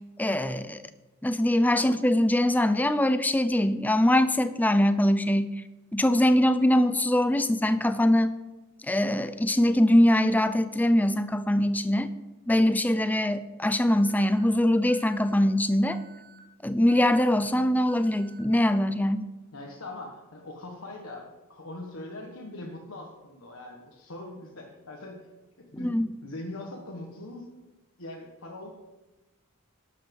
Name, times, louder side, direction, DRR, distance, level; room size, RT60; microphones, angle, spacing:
voice 1, 0.2-0.8 1.2-5.5 5.9-8.4 8.9-12.1 12.5-16.0 16.6-19.3 25.7-26.2, left 1 dB, 5° left, 12 dB, 0.5 m, -23 dB
Alarm, 13.9-14.4 14.9-15.4 15.9-16.4 16.9-17.4 17.9-18.4, right 7 dB, 50° right, 2.0 m, -53 dB
voice 2, 19.5-25.3 25.6-26.0 26.2-27.5 28.0-28.7, left 2 dB, 70° left, 0 dB, 1.4 m, -41 dB
11.5 x 8.5 x 5.3 m, 1.1 s
head